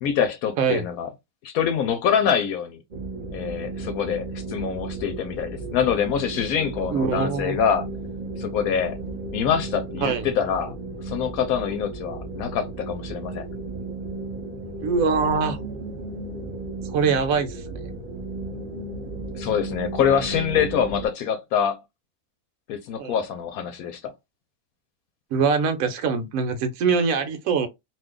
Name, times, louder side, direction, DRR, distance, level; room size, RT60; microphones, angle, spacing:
voice 1, 0.0-1.1 1.4-2.8 3.3-7.9 8.4-9.0 9.3-10.7 11.0-13.5 19.3-21.8 22.7-24.1, left 8 dB, 75° left, 1.0 m, -25 dB
sound 1, 2.9-21.1, right 3 dB, 40° right, 0.7 m, -34 dB
voice 2, 6.9-7.6 9.0-9.1 10.0-10.3 14.8-15.6 16.9-17.9 23.0-23.1 25.3-27.7, right 5 dB, 70° right, 1.1 m, -23 dB
2.6 x 2.3 x 3.5 m
omnidirectional pair, 1.6 m